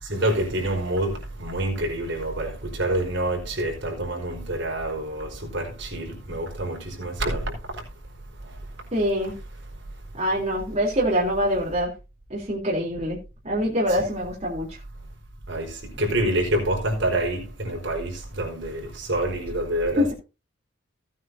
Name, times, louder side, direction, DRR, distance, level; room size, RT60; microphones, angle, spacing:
voice 1, 0.0-7.8 15.5-20.1, right 1 dB, 60° right, 4.7 m, -27 dB
voice 2, 8.9-9.3 10.1-11.9 12.3-13.2 13.4-14.8 20.0-20.1, equal, 30° right, 3.5 m, -24 dB
16.5 x 9.2 x 2.8 m
head